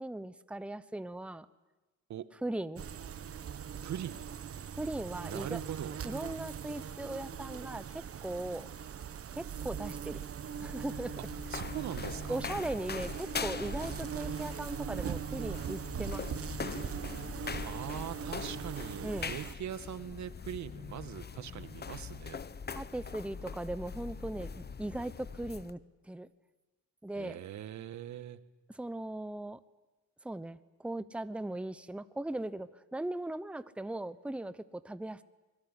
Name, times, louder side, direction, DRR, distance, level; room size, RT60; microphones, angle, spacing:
voice 1, 0.0-1.5 2.4-2.8 4.7-5.6 6.0-8.7 9.3-10.2 10.6-11.2 12.3-16.3 19.0-19.3 22.7-25.8 26.1-26.3 27.0-27.4 28.7-29.6 30.2-35.2, right 1 dB, 5° right, 14 dB, 0.9 m, -38 dB
sound 1, 2.8-19.6, right 8 dB, 50° right, 1.4 m, -40 dB
voice 2, 3.8-4.2 5.3-5.9 11.5-12.4 17.6-22.4 27.1-28.4, right 10 dB, 70° right, 14 dB, 1.5 m, -41 dB
sound 2, 10.5-25.7, left 6 dB, 35° left, 1.1 m, -42 dB
24.5 x 22.5 x 9.9 m, 1.1 s
cardioid pair, 90°, 30 cm